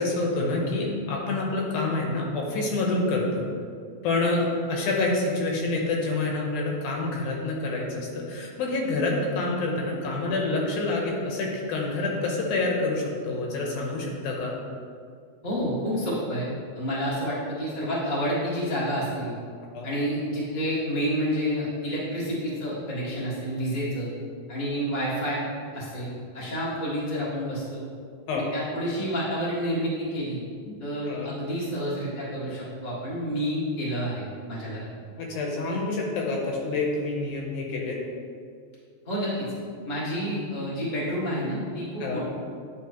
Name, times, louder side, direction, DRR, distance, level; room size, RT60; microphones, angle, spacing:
voice 1, 0.0-3.4 4.0-14.6 19.7-19.9 28.3-28.5 30.7-30.8 31.0-31.3 35.2-38.0 42.0-42.3, left 2 dB, 75° left, -1 dB, 2.2 m, -27 dB
voice 2, 15.4-16.5 16.7-19.3 19.8-24.1 24.5-25.4 25.7-27.8 28.3-30.4 30.8-34.9 39.0-39.5 39.8-42.3, equal, 25° left, -8 dB, 1.0 m, -29 dB
9.5 x 4.3 x 3.0 m, 2.2 s
omnidirectional pair, 3.6 m